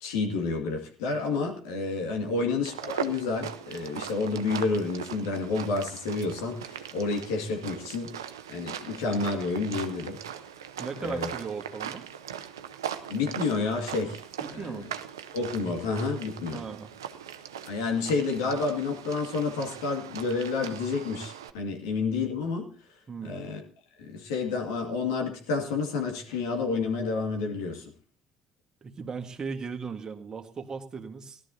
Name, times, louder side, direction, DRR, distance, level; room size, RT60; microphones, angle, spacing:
voice 1, 0.0-8.1 8.5-10.2 11.0-11.3 13.1-14.2 14.5-14.9 15.3-16.6 17.7-22.7 23.2-23.6 24.0-27.8, left 4 dB, 75° left, 2 dB, 2.2 m, -29 dB
sound 1, 2.6-21.5, right 9 dB, 85° right, 0.7 m, -40 dB
voice 2, 10.8-12.0 14.4-14.9 16.5-16.9 23.1-23.4 28.8-31.4, right 5 dB, 35° right, 6 dB, 1.6 m, -37 dB
17.5 x 12.0 x 2.8 m, 0.42 s
hypercardioid pair, 55°, 2 cm